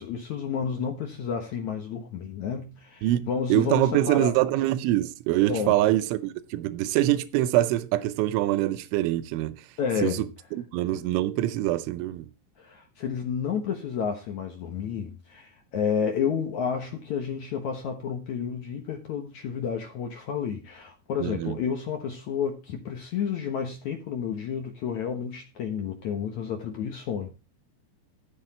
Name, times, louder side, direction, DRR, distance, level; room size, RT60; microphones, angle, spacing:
voice 1, 0.0-4.3 5.5-5.7 9.8-10.3 12.6-27.3, left 7 dB, 70° left, 1.8 m, -31 dB
voice 2, 3.0-9.7 10.0-10.3 10.5-12.3 21.2-21.6, right 14 dB, 90° right, 3.2 m, -24 dB
13.5 x 7.7 x 4.4 m
omnidirectional pair, 5.3 m